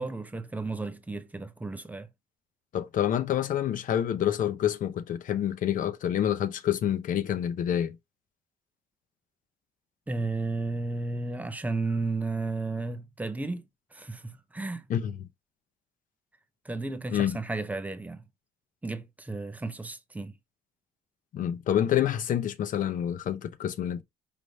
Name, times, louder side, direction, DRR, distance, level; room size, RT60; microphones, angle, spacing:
voice 1, 0.0-2.1 10.1-13.6 13.9-14.9 16.6-18.2 18.8-20.3, right 3 dB, 10° right, 0.6 m, -33 dB
voice 2, 2.7-8.0 14.9-15.1 17.1-17.4 21.3-24.0, left 10 dB, 50° left, 0.7 m, -27 dB
5.0 x 3.1 x 2.7 m
cardioid pair, 110°, 17 cm